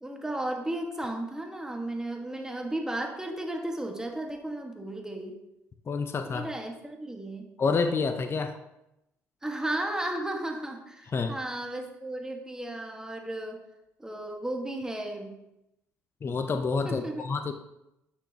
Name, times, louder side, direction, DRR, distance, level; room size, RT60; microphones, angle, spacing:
voice 1, 0.0-5.4 6.2-7.5 9.4-13.6 14.0-15.4 16.8-17.2, right 1 dB, 10° right, 2 dB, 1.6 m, -34 dB
voice 2, 5.9-6.5 7.6-8.6 11.1-11.4 16.2-17.5, left 4 dB, 40° left, 8 dB, 0.6 m, -28 dB
9.8 x 6.0 x 2.9 m, 0.89 s
supercardioid pair, 60°, 6 cm